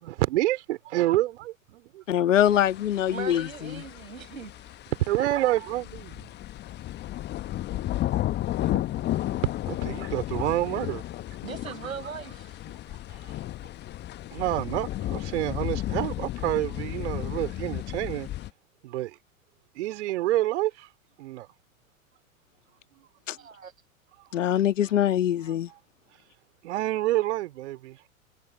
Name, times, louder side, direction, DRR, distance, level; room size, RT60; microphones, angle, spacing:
voice 1, 0.0-2.0 5.1-6.2 9.1-9.4 9.7-11.0 14.3-18.3 18.8-19.2 19.8-20.9 21.2-21.5 26.6-28.0, right 15 dB, 55° right, 4.0 m, -28 dB
voice 2, 2.1-3.8 23.3-23.4 24.3-25.7, left 11 dB, 65° left, 2.0 m, -23 dB
sound 1, 2.4-18.5, left 14 dB, 25° left, 1.1 m, -33 dB
voice 3, 3.1-4.7 5.1-5.5 11.4-12.6 17.6-17.7 23.4-23.7, right 6 dB, 75° right, 7.6 m, -39 dB
figure-of-eight pair, 95°, 41 cm